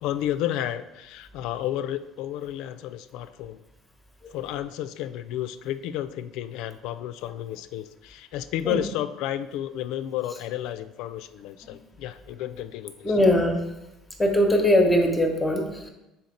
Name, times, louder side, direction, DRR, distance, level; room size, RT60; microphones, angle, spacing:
voice 1, 0.0-3.6 4.3-12.9, left 12 dB, 75° left, 11 dB, 0.3 m, -32 dB
voice 2, 13.0-13.6 14.2-15.9, left 1 dB, 10° left, 2 dB, 0.9 m, -21 dB
6.4 x 4.3 x 4.1 m, 0.95 s
cardioid pair, 135°, 0 cm